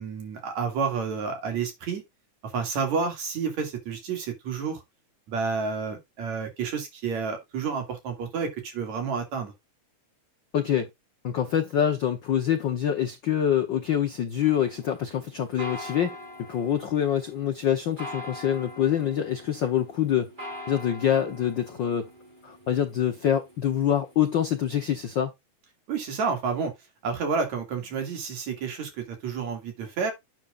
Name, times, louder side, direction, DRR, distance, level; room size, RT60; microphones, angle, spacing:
voice 1, 0.0-2.0 2.4-4.8 5.3-9.5 25.9-26.7 27.0-30.1, right 5 dB, 65° right, 3.7 m, -30 dB
voice 2, 10.5-10.9 11.2-16.2 16.5-22.1 22.4-25.3, left 10 dB, 90° left, 1.0 m, -25 dB
sound 1, 14.4-24.6, left 1 dB, 15° right, 5.2 m, -43 dB
10.5 x 7.8 x 2.5 m
omnidirectional pair, 3.5 m